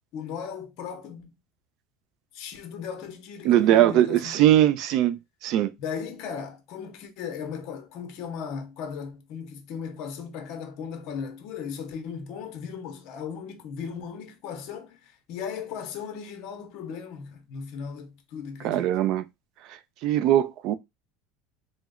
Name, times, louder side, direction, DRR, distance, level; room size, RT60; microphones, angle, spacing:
voice 1, 0.1-1.3 2.3-4.7 5.8-19.0, left 6 dB, 50° left, 0.7 m, -37 dB
voice 2, 3.4-5.2 5.4-5.7 18.6-19.2 20.0-20.8, right 12 dB, 50° right, 0.4 m, -20 dB
3.0 x 2.0 x 3.6 m
supercardioid pair, 150°, 0 cm